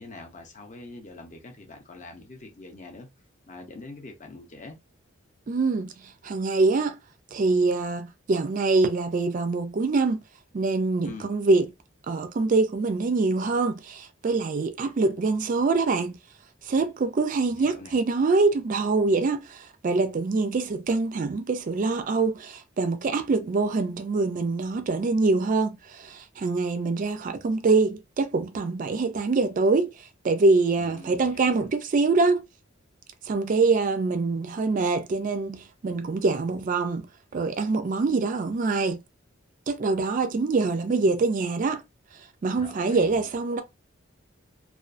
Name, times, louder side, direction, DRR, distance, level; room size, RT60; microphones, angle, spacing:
voice 1, 0.0-3.1 3.5-4.8 11.0-11.4 17.5-17.9 30.8-31.6 42.6-43.3, left 2 dB, 35° left, 0.6 m, -44 dB
voice 2, 5.5-5.9 6.2-7.0 7.3-10.2 10.5-11.7 12.1-16.2 16.6-29.9 30.2-32.4 33.3-37.1 37.3-39.0 39.7-41.8 42.4-43.6, right 3 dB, 40° right, 0.3 m, -24 dB
2.4 x 2.3 x 2.4 m
head